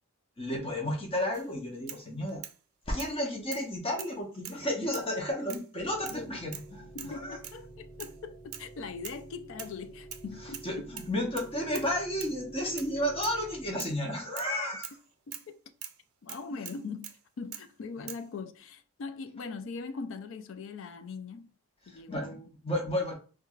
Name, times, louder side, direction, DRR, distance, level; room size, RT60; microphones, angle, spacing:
voice 1, 0.4-2.4 2.9-7.4 10.6-15.0 21.9-22.3 22.6-23.1, left 1 dB, 25° left, 0.8 m, -32 dB
sound 1, 1.3-1.5 1.9-2.6 3.0-3.1 3.5-3.7 4.0-4.6 4.9-5.2 5.5-5.7 6.1-6.2 6.5-6.7 7.0-7.2 7.4-7.6 8.0-8.2 8.5-8.7 9.0-9.2 9.6-10.2 10.5-10.7 11.0-11.9 12.2-12.4 12.8-13.0 13.2-13.4 13.8-14.0 14.4-14.5 14.8-15.0 15.3-15.5 15.8-16.0 16.3-17.2 17.5-17.7 18.1-18.3, right 11 dB, 80° right, 0.4 m, -43 dB
sound 2, 5.8-13.7, right 2 dB, 45° right, 0.7 m, -49 dB
voice 2, 6.1-6.6 6.9-10.9 14.7-14.8 15.3-15.6 16.2-21.5 21.9-22.5, left 4 dB, 65° left, 0.3 m, -41 dB
4.5 x 2.3 x 2.3 m
head